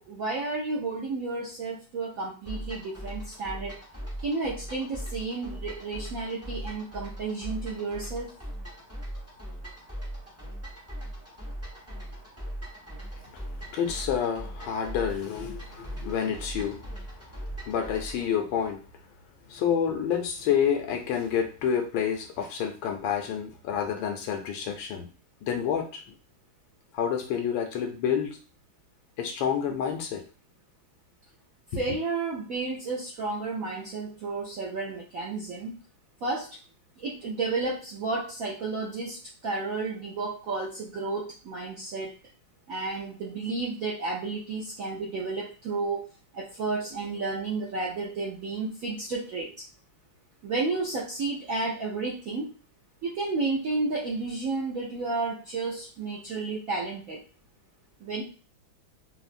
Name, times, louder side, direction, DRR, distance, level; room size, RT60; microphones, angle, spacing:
voice 1, 0.0-3.8 4.2-8.3 31.8-35.7 36.2-36.6 37.0-42.1 42.7-46.1 46.3-49.5 50.4-52.5 53.0-57.2 58.0-58.2, right 3 dB, 75° right, -5 dB, 0.8 m, -32 dB
sound 1, 2.5-18.3, equal, 25° right, 0.3 m, -39 dB
voice 2, 13.7-16.8 17.7-18.8 19.5-25.1 25.4-26.0 26.9-28.4 29.2-30.2 31.7-31.8, left 8 dB, 75° left, 3 dB, 1.3 m, -28 dB
3.6 x 2.0 x 2.5 m, 0.36 s
omnidirectional pair, 2.2 m